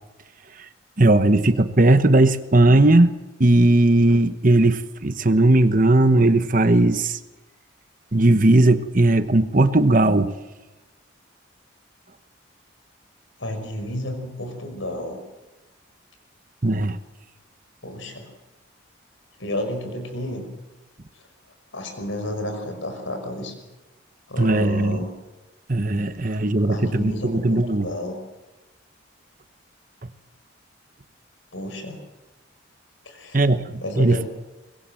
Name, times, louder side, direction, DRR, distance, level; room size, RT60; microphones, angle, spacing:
voice 1, 1.0-3.1 3.4-7.2 8.1-10.3 16.6-17.0 24.4-25.0 25.7-27.9 33.3-34.2, right 2 dB, 40° right, 11 dB, 1.1 m, -17 dB
voice 2, 13.4-15.2 17.8-18.3 19.4-20.4 21.7-23.5 24.3-25.1 26.2-28.2 31.5-32.0 33.1-33.4 33.8-34.3, left 1 dB, 75° left, 6 dB, 5.6 m, -31 dB
23.5 x 21.0 x 7.7 m, 1.1 s
head